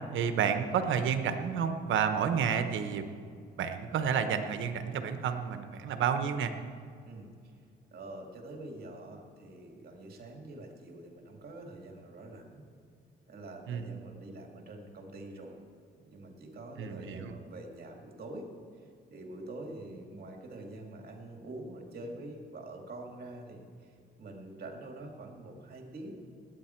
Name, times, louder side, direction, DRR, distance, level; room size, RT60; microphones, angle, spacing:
voice 1, 0.1-3.1 3.6-6.5 13.7-13.9 16.8-17.3, right 7 dB, 75° right, 8 dB, 1.0 m, -30 dB
voice 2, 7.1-7.5 7.9-12.6 13.3-15.6 16.0-18.5 18.8-26.2, right 2 dB, 50° right, 2 dB, 2.4 m, -45 dB
19.0 x 9.0 x 4.5 m, 2.3 s
cardioid pair, 90°, 20 cm